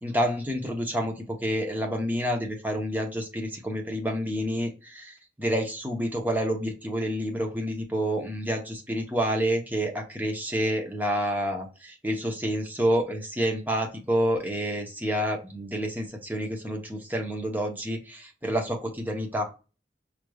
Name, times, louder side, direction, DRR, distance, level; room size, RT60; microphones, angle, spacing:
voice 1, 0.0-4.7 5.4-19.5, equal, 10° right, 2 dB, 0.8 m, -28 dB
4.9 x 3.3 x 2.3 m, 0.32 s
head